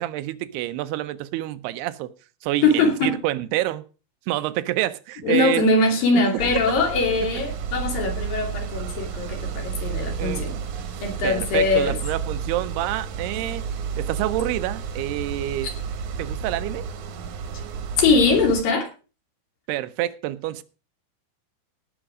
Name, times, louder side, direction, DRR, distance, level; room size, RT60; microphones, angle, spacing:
voice 1, 0.0-2.1 2.4-3.8 4.3-5.6 10.2-10.4 11.2-13.6 14.0-15.7 16.2-16.9 19.7-20.6, right 15 dB, 90° right, 13 dB, 2.8 m, -27 dB
voice 2, 2.6-3.1 5.2-10.6 11.0-12.0 18.0-18.9, left 3 dB, 65° left, 2 dB, 4.2 m, -21 dB
sound 1, 6.4-18.6, right 6 dB, 65° right, 2.2 m, -31 dB
17.5 x 6.3 x 4.9 m, 0.35 s
omnidirectional pair, 4.5 m